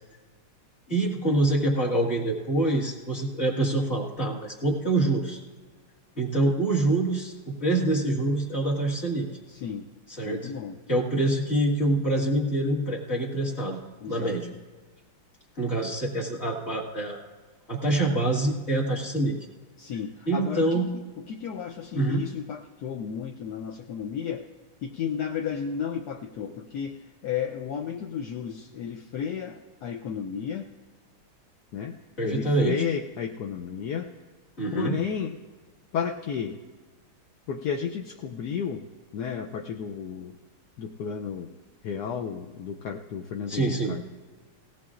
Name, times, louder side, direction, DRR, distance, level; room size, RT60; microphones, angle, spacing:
voice 1, 0.9-5.4 6.2-9.3 10.2-10.5 10.9-13.8 14.1-14.5 15.6-17.2 17.7-19.4 20.3-20.9 21.9-22.2 32.2-32.8 34.6-35.0 43.5-44.0, right 2 dB, 30° left, -3 dB, 2.0 m, -25 dB
voice 2, 9.5-9.9 10.2-10.8 14.0-14.4 19.8-20.8 21.2-24.5 24.8-30.7 31.7-32.0 32.2-34.1 34.7-35.4 35.9-36.6 37.5-38.9 39.1-40.4 40.8-41.5 41.8-44.0, left 7 dB, 70° left, 2 dB, 1.0 m, -33 dB
19.0 x 17.0 x 2.5 m, 1.4 s
omnidirectional pair, 2.3 m